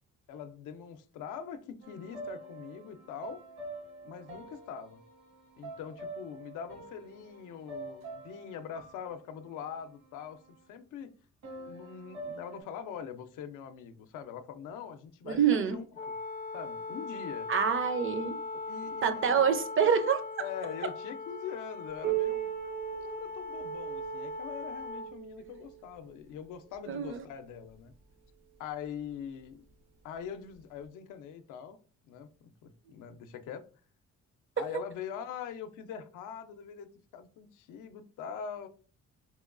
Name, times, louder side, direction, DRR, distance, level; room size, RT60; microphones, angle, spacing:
voice 1, 0.3-3.4 4.0-5.0 5.6-11.1 11.6-16.1 16.5-17.5 18.7-19.5 20.4-22.5 22.9-27.9 28.6-29.6 30.0-31.8 32.0-32.3 32.6-33.7 34.6-38.7, left 8 dB, 90° left, 0.5 m, -43 dB
sound 1, 1.8-10.6 11.4-12.6, right 2 dB, 65° right, 1.1 m, -46 dB
voice 2, 15.3-15.8 17.5-18.3 19.0-20.2 26.9-27.2, right 7 dB, 45° right, 0.5 m, -26 dB
Wind instrument woodwind instrument, 15.9-25.1, left 3 dB, 30° left, 0.4 m, -40 dB
Piano, 22.0-27.3 28.2-28.3 28.8-28.9 29.7-29.8 30.8-30.9, right 20 dB, 85° right, 1.3 m, -38 dB
4.2 x 2.2 x 2.4 m
cardioid pair, 90°, 30 cm